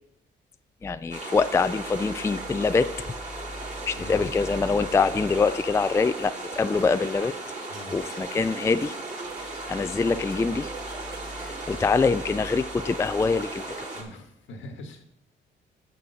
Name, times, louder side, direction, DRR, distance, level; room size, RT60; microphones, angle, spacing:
voice 1, 0.8-3.1 3.9-7.3 7.9-8.9 9.7-10.7 11.4-13.6, left 4 dB, 15° left, 12 dB, 0.3 m, -24 dB
sound 1, 1.1-14.0, right 2 dB, 35° right, 2.8 m, -36 dB
voice 2, 3.9-4.5 7.7-8.0 13.9-15.0, left 2 dB, 75° left, 5 dB, 1.5 m, -42 dB
sound 2, 5.9-14.1, right 5 dB, 55° right, 1.4 m, -54 dB
7.6 x 6.1 x 5.7 m, 0.77 s
cardioid pair, 90°, 20 cm